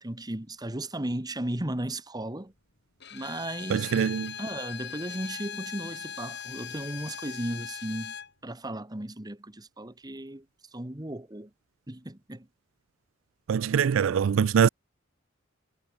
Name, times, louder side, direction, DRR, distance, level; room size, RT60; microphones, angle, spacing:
voice 1, 0.0-2.5 3.1-4.0 4.4-8.1 8.4-10.4 10.7-11.5 11.9-12.5, right 1 dB, 20° right, 1.5 m, -35 dB
Bowed string instrument, 3.0-8.3, left 8 dB, 60° left, 6.1 m, -40 dB
voice 2, 3.7-4.3 13.5-14.7, right 7 dB, 85° right, 0.4 m, -23 dB
head